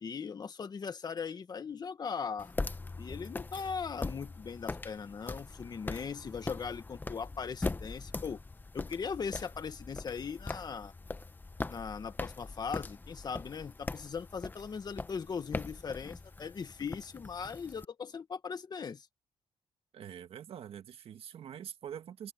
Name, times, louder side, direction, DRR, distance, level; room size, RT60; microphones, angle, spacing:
voice 1, 0.0-2.5 3.0-8.4 8.7-10.9 11.7-19.1, left 6 dB, 40° left, 1.6 m, -39 dB
sound 1, 2.4-17.8, left 3 dB, 20° left, 1.0 m, -41 dB
voice 2, 19.9-22.3, right 9 dB, 65° right, 1.7 m, -45 dB
cardioid pair, 115°, 11 cm